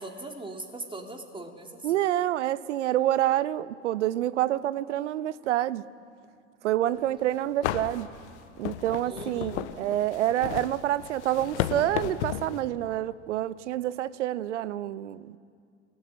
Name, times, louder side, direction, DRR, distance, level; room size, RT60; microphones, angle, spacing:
voice 1, 0.0-1.8 9.1-9.6, right 2 dB, 15° right, 3.9 m, -40 dB
voice 2, 1.8-5.8 6.6-8.1 8.6-15.4, right 13 dB, 65° right, 1.0 m, -27 dB
sound 1, 7.1-7.2 7.6-12.6, left 12 dB, 60° left, 1.4 m, -33 dB
28.0 x 19.0 x 9.4 m
figure-of-eight pair, 75°, 38 cm